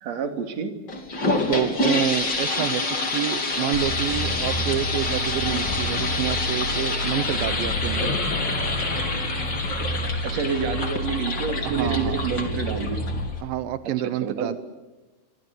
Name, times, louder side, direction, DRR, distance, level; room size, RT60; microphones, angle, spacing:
voice 1, 0.0-0.7 10.2-13.0 14.2-14.6, right 6 dB, 45° right, 5 dB, 3.1 m, -28 dB
sound 1, 0.9-13.4, left 3 dB, 25° left, 3.3 m, -27 dB
voice 2, 1.5-2.8 3.1-8.2 9.8-10.0 11.6-12.2 13.4-14.6, right 12 dB, 80° right, 11 dB, 2.0 m, -28 dB
sound 2, 3.7-13.3, equal, 65° left, 5.0 m, -30 dB
28.5 x 25.0 x 6.8 m, 1.2 s
omnidirectional pair, 5.3 m